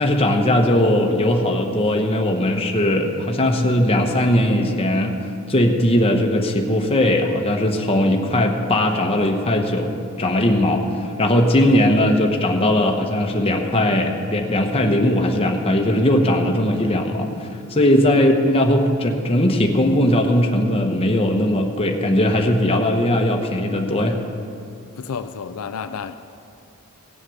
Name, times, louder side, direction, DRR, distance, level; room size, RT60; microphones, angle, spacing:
voice 1, 0.0-5.1 5.5-9.9 10.2-24.2, left 1 dB, 25° left, 2 dB, 1.0 m, -19 dB
voice 2, 25.0-26.1, left 6 dB, 80° left, 9 dB, 0.4 m, -31 dB
17.0 x 7.4 x 6.3 m, 2.5 s
head